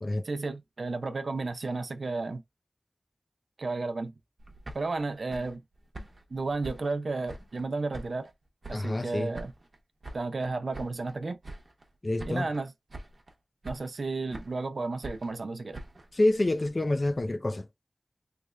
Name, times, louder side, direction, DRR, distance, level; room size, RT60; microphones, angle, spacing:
voice 1, 0.2-2.4 3.6-4.1 4.7-5.6 6.3-8.3 8.7-9.5 10.1-11.4 12.3-12.7 13.6-15.8, right 3 dB, 80° right, 0.6 m, -33 dB
sound 1, 4.4-7.7 7.9-9.1 9.3-11.2 11.4-11.9 12.2-12.6 12.9-13.3 13.6-14.7 15.0-17.2, right 1 dB, 65° right, 0.9 m, -45 dB
voice 2, 8.7-9.3 12.0-12.5 16.1-17.7, left 1 dB, 40° left, 0.5 m, -27 dB
3.3 x 2.4 x 3.2 m
wide cardioid pair, 65°, 0 cm